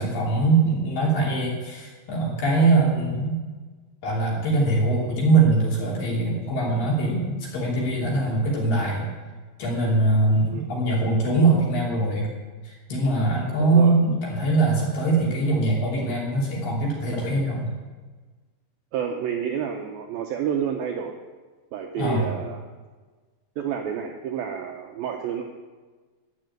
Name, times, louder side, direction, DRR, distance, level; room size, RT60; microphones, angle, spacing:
voice 1, 0.0-3.4 4.0-9.1 9.6-12.3 12.6-17.7 22.0-22.3, right 2 dB, 55° left, -4 dB, 4.4 m, -22 dB
voice 2, 13.6-13.9 18.9-21.2 21.7-22.6 23.6-25.4, right 8 dB, 85° right, 3 dB, 2.1 m, -29 dB
13.0 x 6.0 x 9.3 m, 1.4 s
omnidirectional pair, 5.1 m